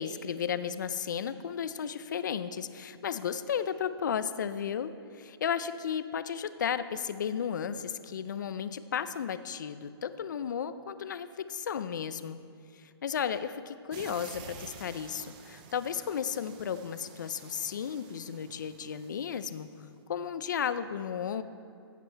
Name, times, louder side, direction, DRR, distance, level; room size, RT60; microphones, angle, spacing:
voice 1, 0.0-12.4 12.7-21.4, left 8 dB, 45° left, 13 dB, 0.5 m, -34 dB
sound 1, 13.9-19.8, right 6 dB, 20° right, 0.5 m, -50 dB
15.0 x 7.5 x 4.5 m, 2.6 s
hypercardioid pair, 175°, 14 cm